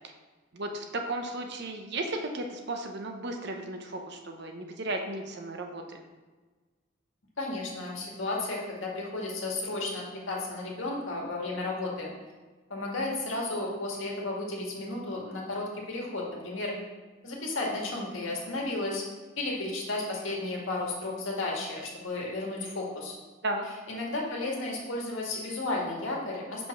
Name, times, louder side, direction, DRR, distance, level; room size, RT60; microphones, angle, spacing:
voice 1, 0.5-6.0 23.4-23.6, right 2 dB, 55° right, 4 dB, 0.8 m, -35 dB
voice 2, 7.4-12.1 12.7-16.7 17.2-19.0 19.4-23.1 23.9-26.7, left 2 dB, 70° left, -2 dB, 1.7 m, -33 dB
5.4 x 5.1 x 5.9 m, 1.3 s
head